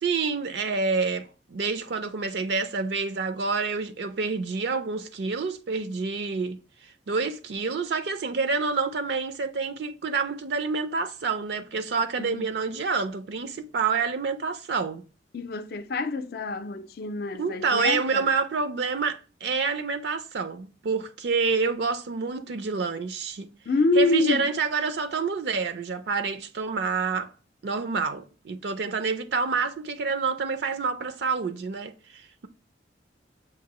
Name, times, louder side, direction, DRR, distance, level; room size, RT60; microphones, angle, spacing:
voice 1, 0.0-6.6 7.1-15.0 17.4-23.5 24.0-27.3 27.6-32.5, right 4 dB, 70° right, 0.4 m, -28 dB
voice 2, 15.3-18.3 23.7-24.5, left 2 dB, 55° left, 0.4 m, -26 dB
6.6 x 2.6 x 2.9 m
head